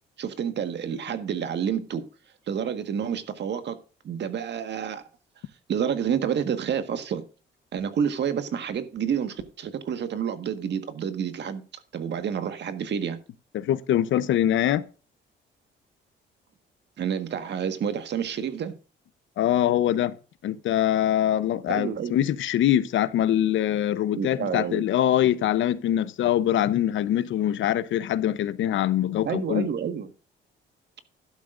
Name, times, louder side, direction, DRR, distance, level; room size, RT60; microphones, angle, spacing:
voice 1, 0.2-2.0 2.5-3.8 4.0-5.0 5.7-7.2 7.7-11.6 11.9-13.2 17.0-18.7 21.7-22.2 24.1-24.8 29.2-30.1, right 8 dB, 60° right, 1.6 m, -29 dB
voice 2, 13.5-14.8 19.4-20.1 20.4-29.7, left 11 dB, 75° left, 0.8 m, -23 dB
12.0 x 12.0 x 2.6 m
cardioid pair, 90°, 20 cm